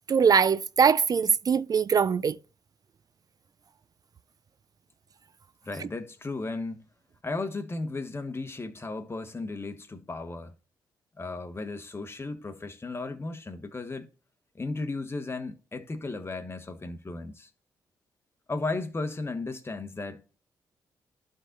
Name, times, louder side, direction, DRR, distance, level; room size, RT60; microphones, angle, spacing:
voice 1, 0.1-2.3, right 6 dB, 45° right, 0.4 m, -22 dB
voice 2, 5.6-6.9 7.2-10.5 11.2-14.1 14.5-17.5 18.5-20.4, left 3 dB, 30° left, 1.4 m, -35 dB
12.0 x 4.0 x 4.1 m
supercardioid pair, 50°, 9 cm